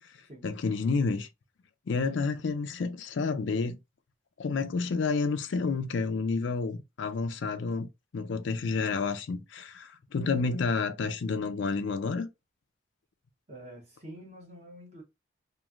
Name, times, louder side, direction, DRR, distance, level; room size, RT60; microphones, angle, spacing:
voice 1, 0.4-1.3 1.9-3.8 4.4-12.3, left 4 dB, 75° left, 0.4 m, -30 dB
voice 2, 13.5-15.0, right 1 dB, 35° right, 0.9 m, -47 dB
3.0 x 2.5 x 2.4 m
head